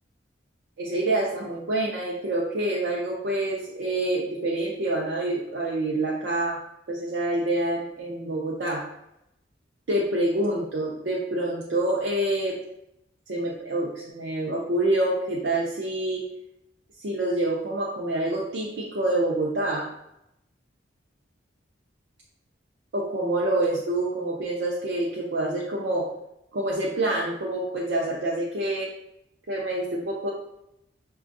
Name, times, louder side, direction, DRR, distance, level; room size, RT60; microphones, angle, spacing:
voice 1, 0.8-6.6 6.9-8.8 9.9-12.6 13.3-16.2 17.0-19.9 22.9-26.1 26.5-28.9 29.5-30.3, right 1 dB, 75° right, -4 dB, 0.5 m, -27 dB
6.0 x 2.3 x 2.5 m, 0.83 s
head